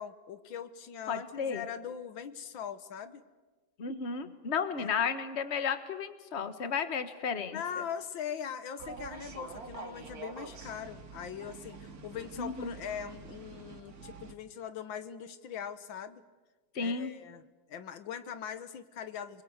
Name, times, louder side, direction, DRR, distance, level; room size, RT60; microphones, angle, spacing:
voice 1, 0.0-3.2 4.8-4.9 7.5-16.2 16.8-17.4 17.7-19.4, left 8 dB, 80° left, 11 dB, 1.9 m, -41 dB
voice 2, 1.1-1.6 3.8-7.8 12.4-12.7 16.7-17.1, left 6 dB, 35° left, 9 dB, 1.6 m, -33 dB
sound 1, 8.8-14.3, right 4 dB, 50° right, 2.2 m, -46 dB
29.0 x 22.0 x 8.1 m, 1.2 s
omnidirectional pair, 2.1 m